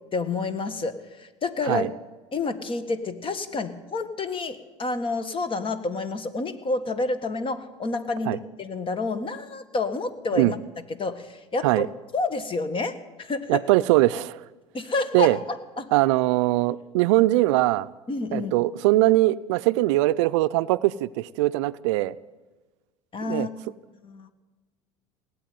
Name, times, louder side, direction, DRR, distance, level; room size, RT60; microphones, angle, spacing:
voice 1, 0.1-1.9 2.3-10.6 11.0-11.9 12.1-13.6 14.7-15.9 18.1-18.5 23.1-23.5 24.0-24.3, left 3 dB, 35° left, 12 dB, 1.6 m, -29 dB
voice 2, 13.5-14.4 15.1-15.4 15.9-17.9 18.3-22.1 23.3-23.5, right 18 dB, 75° right, 16 dB, 0.5 m, -21 dB
18.5 x 8.3 x 9.3 m, 1.2 s
hypercardioid pair, 80°, 16 cm